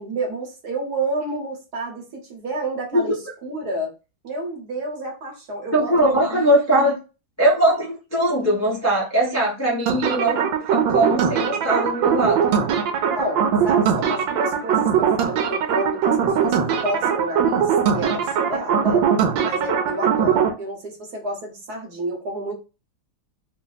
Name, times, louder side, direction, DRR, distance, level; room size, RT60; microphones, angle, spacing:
voice 1, 0.0-3.9 4.2-6.4 6.7-6.8 13.1-19.1 19.4-22.5, right 1 dB, 60° right, 1.4 m, -30 dB
voice 2, 5.7-7.0 7.4-10.4 10.7-12.4, right 1 dB, 20° left, 0.4 m, -20 dB
sound 1, 9.9-20.5, right 7 dB, 80° right, 1.3 m, -21 dB
3.3 x 2.1 x 3.9 m
omnidirectional pair, 2.1 m